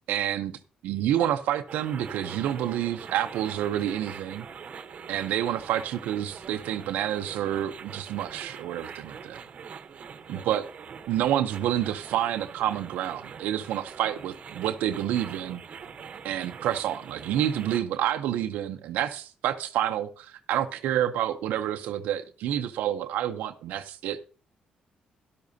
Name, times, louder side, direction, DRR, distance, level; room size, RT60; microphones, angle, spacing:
voice 1, 0.1-0.5 0.8-4.5 5.1-9.4 10.3-10.7 11.1-15.6 16.2-24.2, right 11 dB, 90° right, 0.6 m, -28 dB
sound 1, 1.7-17.8, right 6 dB, 55° right, 0.9 m, -43 dB
12.0 x 11.5 x 2.7 m
cardioid pair, 85°, 3 cm